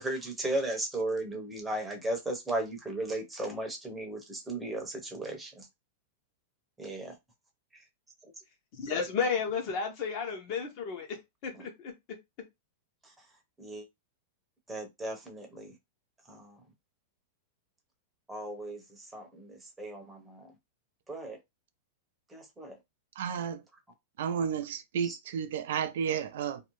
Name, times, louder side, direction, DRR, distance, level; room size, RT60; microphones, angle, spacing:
voice 1, 0.0-5.7 6.8-7.2 7.7-7.8 8.2-8.3 8.9-9.0 11.5-11.7 13.0-13.3 13.6-13.9 14.7-15.8 16.3-16.6 18.3-20.5 21.1-21.4 22.3-22.8 25.0-25.2, right 2 dB, 5° right, 0.8 m, -36 dB
voice 2, 8.8-11.2 11.4-11.9, left 5 dB, 45° left, 1.0 m, -32 dB
voice 3, 23.2-23.6 24.2-26.6, right 7 dB, 70° right, 0.4 m, -32 dB
2.6 x 2.1 x 3.0 m
supercardioid pair, 150°, 0 cm